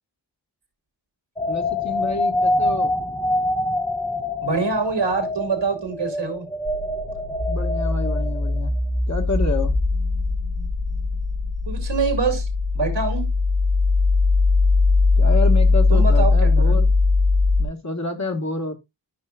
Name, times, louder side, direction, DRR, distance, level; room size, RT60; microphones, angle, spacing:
sound 1, 1.4-8.7, left 1 dB, 10° left, 0.7 m, -25 dB
voice 1, 1.5-2.9 7.5-8.7 9.1-9.7 15.2-16.9 17.6-18.7, left 2 dB, 40° left, 1.5 m, -28 dB
voice 2, 4.4-6.5 11.7-12.5 12.7-13.3 15.9-16.8, right 4 dB, 85° right, 2.7 m, -25 dB
sound 2, 6.7-17.6, left 3 dB, 60° left, 1.9 m, -20 dB
12.5 x 5.5 x 2.3 m
wide cardioid pair, 85°, 43 cm